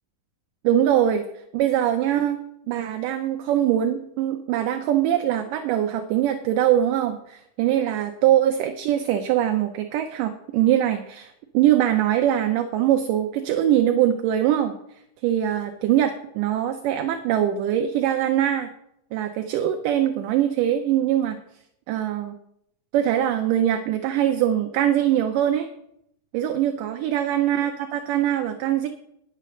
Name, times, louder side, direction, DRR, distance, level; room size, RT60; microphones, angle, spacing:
voice 1, 0.6-1.2 1.5-2.4 2.7-14.8 15.2-18.7 19.1-21.4 21.9-22.4 22.9-25.7 26.3-28.9, right 11 dB, 80° right, 6 dB, 2.0 m, -22 dB
10.0 x 6.4 x 6.6 m, 0.76 s
omnidirectional pair, 4.4 m